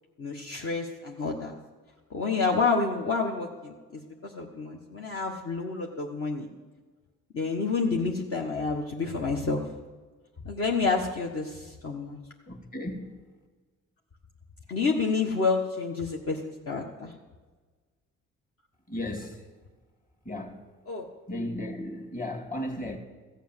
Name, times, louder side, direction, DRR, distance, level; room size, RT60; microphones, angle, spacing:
voice 1, 0.2-1.6 2.1-6.5 7.3-9.7 10.4-12.2 14.7-17.1 20.9-21.0, left 4 dB, 50° left, 1.4 m, -29 dB
voice 2, 12.5-13.2 18.9-19.5 20.2-20.7 21.3-23.0, left 1 dB, 30° left, 2.1 m, -35 dB
15.0 x 7.4 x 7.5 m
cardioid pair, 90°, 30 cm